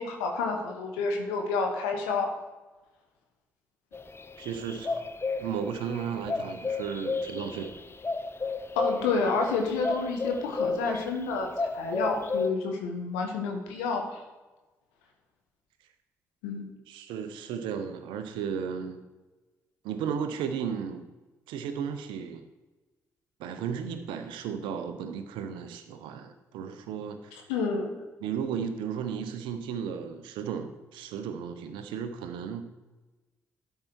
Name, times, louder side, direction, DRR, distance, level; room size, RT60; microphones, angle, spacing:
voice 1, 0.0-2.3 8.8-14.2 16.4-16.6 27.5-27.9, left 4 dB, 75° left, 2 dB, 1.3 m, -29 dB
sound 1, 3.9-11.3 11.5-12.5, left 3 dB, 30° left, 0.8 m, -33 dB
voice 2, 4.4-5.1 5.4-7.8 16.9-19.0 19.8-21.0 21.5-22.4 23.4-27.4 28.2-32.7, right 7 dB, 70° right, 8 dB, 0.9 m, -34 dB
12.0 x 5.7 x 4.6 m, 1.2 s
figure-of-eight pair, 40°, 9 cm